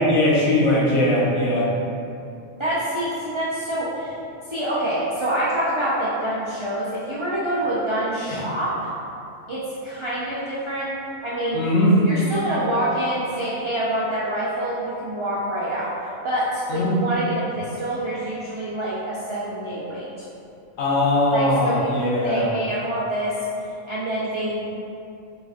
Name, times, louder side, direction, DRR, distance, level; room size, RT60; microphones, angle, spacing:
voice 1, 0.0-1.7 8.3-8.4 11.5-12.0 16.7-16.9 20.8-22.5, left 1 dB, 70° left, -4 dB, 1.0 m, -20 dB
voice 2, 2.6-4.1 4.5-8.9 9.5-10.9 11.2-11.6 12.0-15.9 16.2-20.3 21.3-23.3 23.9-24.7, right 1 dB, 50° right, -10 dB, 0.3 m, -26 dB
5.0 x 2.5 x 2.4 m, 2.6 s
omnidirectional pair, 1.4 m